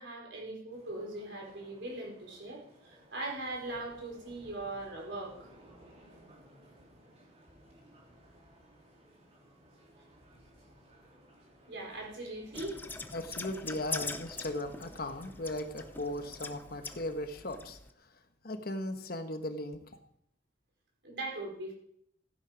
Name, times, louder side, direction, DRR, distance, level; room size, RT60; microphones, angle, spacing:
voice 1, 0.0-5.5 11.7-12.8 21.0-21.7, right 2 dB, 65° right, -1 dB, 4.5 m, -40 dB
sound 1, 0.7-17.3, right 1 dB, 30° right, 2.9 m, -59 dB
sound 2, 12.5-17.9, left 3 dB, 10° left, 0.5 m, -43 dB
voice 2, 13.1-17.8 18.4-19.8, left 1 dB, 50° left, 7 dB, 1.2 m, -37 dB
15.5 x 8.6 x 5.1 m, 0.70 s
head